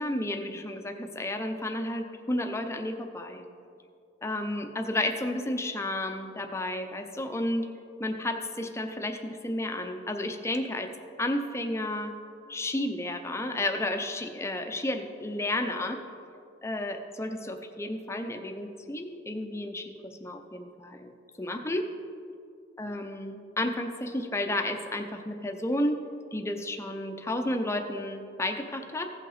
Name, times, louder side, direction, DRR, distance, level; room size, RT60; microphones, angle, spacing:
voice 1, 0.0-3.5 4.2-7.7 8.0-10.9 11.2-12.1 12.5-16.0 16.6-21.9 22.8-26.0 26.3-29.1, left 1 dB, 15° left, 5 dB, 0.6 m, -32 dB
16.0 x 5.5 x 4.1 m, 2.4 s
head